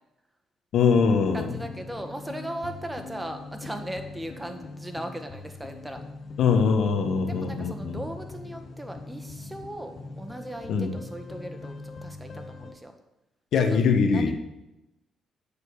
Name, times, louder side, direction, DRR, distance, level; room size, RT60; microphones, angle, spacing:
voice 1, 0.7-1.5 6.4-8.0 10.7-10.9 13.5-14.3, left 5 dB, 70° left, 6 dB, 1.2 m, -22 dB
sound 1, 0.9-12.7, left 3 dB, 50° left, 1.0 m, -41 dB
voice 2, 1.3-6.0 7.2-12.9 13.7-13.8 14.1-14.3, right 1 dB, 10° right, 6 dB, 1.5 m, -38 dB
9.6 x 7.0 x 7.0 m, 0.93 s
cardioid pair, 90°, 0 cm